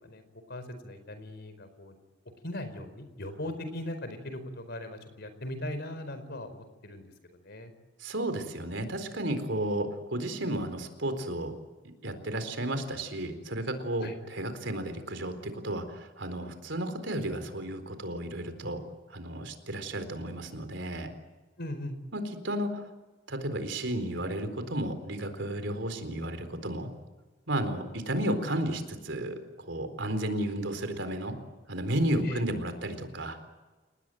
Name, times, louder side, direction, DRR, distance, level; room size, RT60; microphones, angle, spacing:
voice 1, 0.5-2.0 2.4-7.7 14.0-14.1 21.6-22.0 32.2-32.4, left 1 dB, 60° left, 11 dB, 4.6 m, -39 dB
voice 2, 8.0-11.5 12.0-18.8 19.1-21.1 22.1-22.8 23.3-26.9 27.5-29.4 29.7-31.4 31.7-33.4, right 1 dB, 70° right, 8 dB, 4.1 m, -33 dB
30.0 x 19.0 x 9.2 m, 1.2 s
head